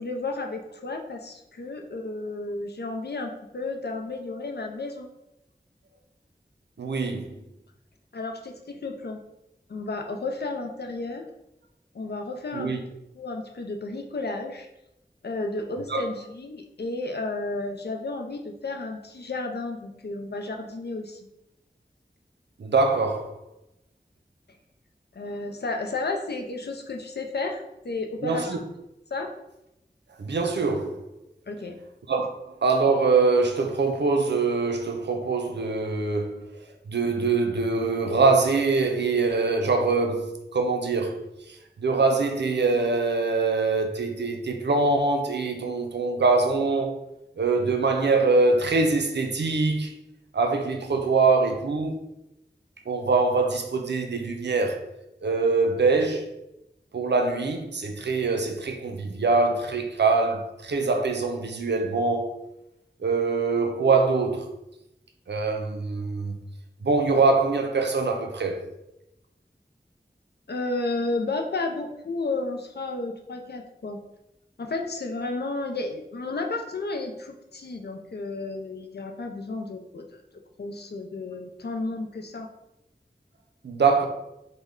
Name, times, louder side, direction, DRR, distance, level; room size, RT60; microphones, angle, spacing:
voice 1, 0.0-5.1 8.1-9.2 9.7-11.3 11.9-12.7 13.1-14.7 15.2-21.3 25.1-28.6 29.1-29.3 31.5-31.8 70.5-74.0 74.6-80.2 80.6-82.5, left 3 dB, 70° left, 0.4 m, -32 dB
voice 2, 6.8-7.3 12.5-12.8 15.9-16.0 22.6-23.3 28.2-28.6 30.2-31.0 32.1-32.3 32.6-36.5 36.9-41.2 41.8-46.9 47.4-49.9 50.3-52.0 52.9-54.8 55.2-56.2 56.9-62.3 63.0-64.5 65.3-66.4 66.8-68.6 83.6-84.1, right 3 dB, 80° right, 0.4 m, -23 dB
3.2 x 2.1 x 3.6 m
wide cardioid pair, 45°, 18 cm